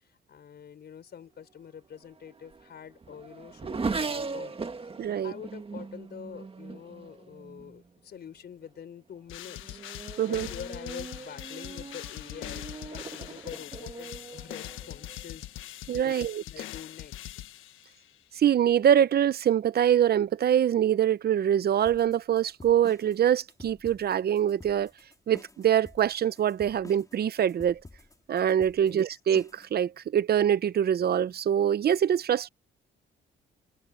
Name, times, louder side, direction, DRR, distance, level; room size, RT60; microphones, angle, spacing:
voice 1, 0.3-4.5 5.2-9.8 10.2-15.8 16.0-17.4 28.7-29.2, left 8 dB, 55° left, 4.9 m, -46 dB
Race car auto racing / Accelerating revving vroom, 1.9-7.8 8.6-9.0 9.4-15.3, right 4 dB, 30° right, 1.9 m, -39 dB
voice 2, 5.0-5.3 10.2-10.5 15.9-16.4 18.4-24.9 25.3-27.8 28.3-32.5, right 9 dB, 50° right, 0.8 m, -24 dB
sound 1, 9.3-18.1, left 14 dB, 90° left, 1.4 m, -42 dB
sound 2, 21.9-29.7, left 2 dB, 15° left, 4.6 m, -50 dB
open air
cardioid pair, 90°, 20 cm